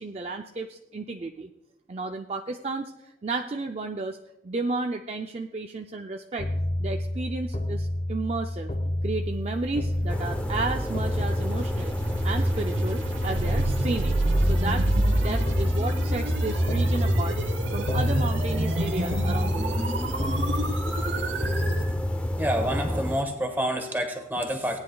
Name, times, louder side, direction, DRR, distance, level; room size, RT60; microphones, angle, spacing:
voice 1, 0.0-1.5 1.9-4.2 4.4-6.5 6.8-8.7 9.0-11.9 12.2-14.2 14.4-17.4 17.7-19.9, right 3 dB, 35° right, 4 dB, 0.4 m, -32 dB
sound 1, 6.4-22.7, left 1 dB, 40° left, 1.2 m, -30 dB
sound 2, 9.8-21.9, right 1 dB, 85° right, 1.2 m, -29 dB
sound 3, 10.1-23.2, equal, 5° left, 0.6 m, -31 dB
voice 2, 22.4-24.8, equal, 10° right, 4 dB, 1.4 m, -28 dB
18.0 x 9.8 x 2.3 m, 0.92 s
head